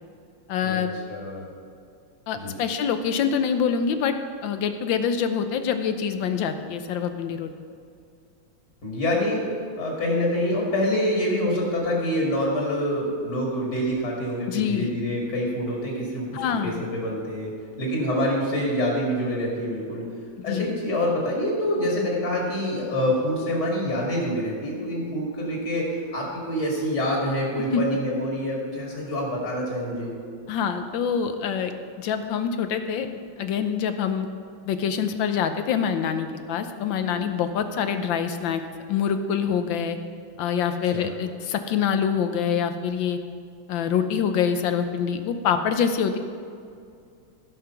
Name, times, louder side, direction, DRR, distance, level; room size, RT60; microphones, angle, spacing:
voice 1, 0.5-0.9 2.3-4.1 4.4-7.5 14.5-14.9 16.3-16.8 20.5-20.7 27.7-27.8 30.5-34.3 34.6-38.6 38.9-40.0 40.4-43.2 43.7-46.2, left 7 dB, 75° left, 8 dB, 1.5 m, -25 dB
voice 2, 1.1-1.5 2.3-2.6 8.8-9.4 9.8-17.5 17.8-20.1 20.4-30.1 40.9-41.1, left 1 dB, 55° left, -3 dB, 2.8 m, -26 dB
16.0 x 5.7 x 5.8 m, 2.3 s
omnidirectional pair, 2.2 m